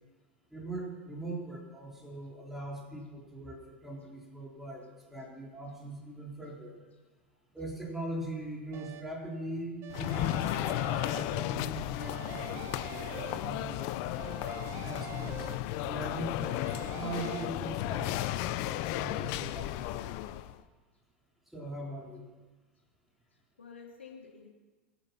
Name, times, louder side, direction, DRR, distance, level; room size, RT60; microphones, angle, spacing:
voice 1, 0.5-6.8 7.5-14.2 14.8-15.5 15.8-16.3 16.8-18.2 18.4-20.0 21.5-22.3, right 1 dB, 5° right, -3 dB, 3.9 m, -41 dB
sound 1, 8.7-9.3 9.8-11.7 12.0-13.8 14.2-16.0 16.4-17.4, right 10 dB, 45° right, 1.0 m, -46 dB
sound 2, 9.9-20.6, left 14 dB, 55° left, 0.7 m, -34 dB
voice 2, 23.2-24.5, left 5 dB, 90° left, -1 dB, 3.1 m, -52 dB
24.0 x 8.0 x 5.8 m, 1.3 s
hypercardioid pair, 90°, 6 cm